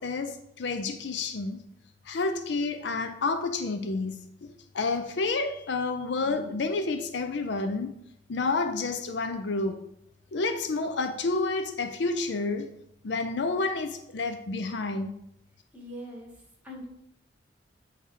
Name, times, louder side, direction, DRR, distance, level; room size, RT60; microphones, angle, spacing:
voice 1, 0.0-1.6 2.1-4.2 4.7-7.9 8.3-9.8 10.3-12.7 13.0-15.1, left 3 dB, 65° left, 0.5 m, -29 dB
voice 2, 15.7-16.3 16.6-16.8, equal, 10° right, 1.6 m, -41 dB
8.3 x 2.9 x 4.8 m
head